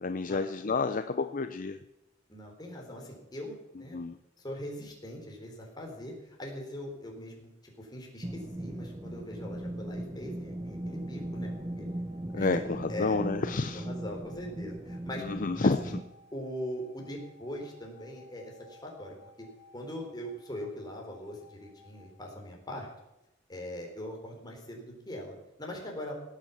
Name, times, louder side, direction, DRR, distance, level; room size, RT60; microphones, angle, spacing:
voice 1, 0.0-1.8 3.9-4.2 12.3-13.9 15.2-15.8, left 3 dB, 45° left, 9 dB, 0.6 m, -29 dB
voice 2, 2.3-4.0 4.4-11.9 12.3-12.5 12.9-13.2 13.7-15.2 15.6-16.0 16.3-19.5 19.7-22.9 23.5-26.1, equal, 20° left, 0 dB, 4.1 m, -41 dB
sound 1, 8.2-16.0, right 1 dB, 20° right, 1.0 m, -38 dB
sound 2, 10.5-22.2, left 3 dB, 80° left, 2.9 m, -59 dB
17.5 x 9.2 x 7.2 m, 0.90 s
head